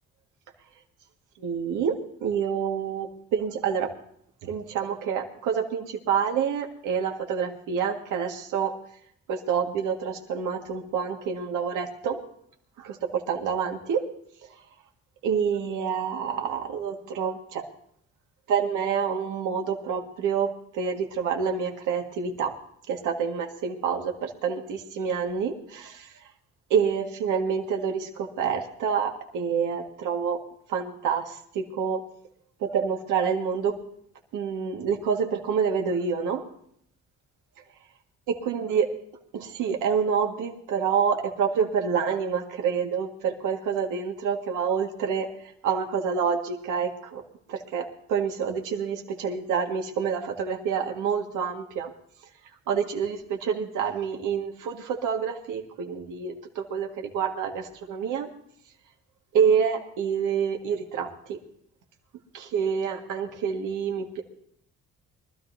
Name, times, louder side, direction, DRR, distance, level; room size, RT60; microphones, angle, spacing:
voice 1, 1.4-3.9 4.4-8.7 9.3-12.2 12.8-14.0 15.2-17.7 18.5-22.5 22.9-26.1 26.7-30.4 30.7-32.0 32.6-33.8 34.3-36.4 38.3-38.9 39.3-45.3 45.6-47.2 47.5-51.9 52.7-58.3 59.3-61.4 62.3-64.2, right 7 dB, 90° right, 2 dB, 1.8 m, -27 dB
23.5 x 13.0 x 2.7 m, 0.68 s
cardioid pair, 90°, 30 cm